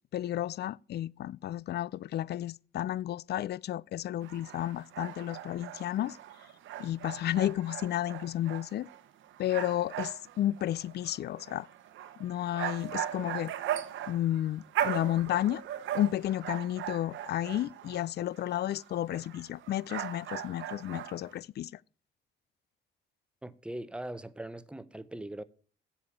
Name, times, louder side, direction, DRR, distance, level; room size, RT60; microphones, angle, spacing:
voice 1, 0.1-6.2 6.8-8.9 9.4-11.7 12.2-13.5 14.1-15.6 15.9-21.8, left 12 dB, 55° left, 0.4 m, -32 dB
sound 1, 4.2-18.1 18.4-21.3, right 11 dB, 80° right, 1.0 m, -39 dB
voice 2, 23.4-25.4, right 1 dB, 5° right, 0.8 m, -40 dB
7.9 x 7.1 x 8.4 m
cardioid pair, 90°, 20 cm